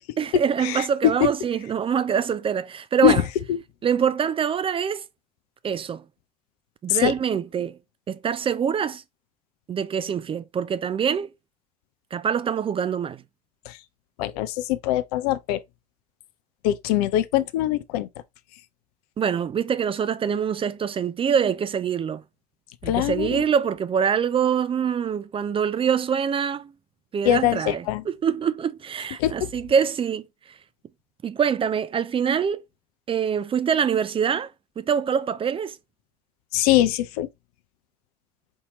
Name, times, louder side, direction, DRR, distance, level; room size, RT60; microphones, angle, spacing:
voice 1, 0.2-3.2 3.8-5.0 5.6-6.0 6.8-7.8 8.1-9.0 9.7-11.3 12.1-13.2 19.2-22.2 22.8-26.7 27.1-30.2 31.2-32.6 33.1-35.8, right 7 dB, 25° right, 0.4 m, -24 dB
voice 2, 14.2-15.6 16.6-18.1 22.8-23.5 27.2-28.0 29.2-29.3 36.5-37.3, left 13 dB, 65° left, 0.5 m, -22 dB
4.5 x 2.8 x 2.9 m
figure-of-eight pair, 65°, 21 cm